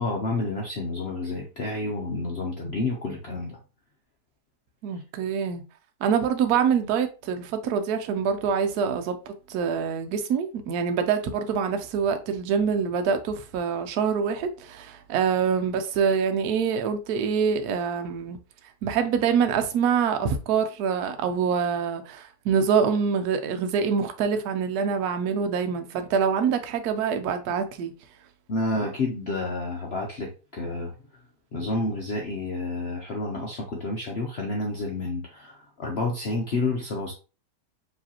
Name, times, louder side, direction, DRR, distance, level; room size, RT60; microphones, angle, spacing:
voice 1, 0.0-3.6 28.5-30.9 31.5-37.1, left 2 dB, 55° left, 0.7 m, -29 dB
voice 2, 4.8-5.6 6.0-18.4 18.8-27.9, right 6 dB, 70° right, 1.1 m, -25 dB
4.9 x 3.3 x 2.8 m
omnidirectional pair, 1.9 m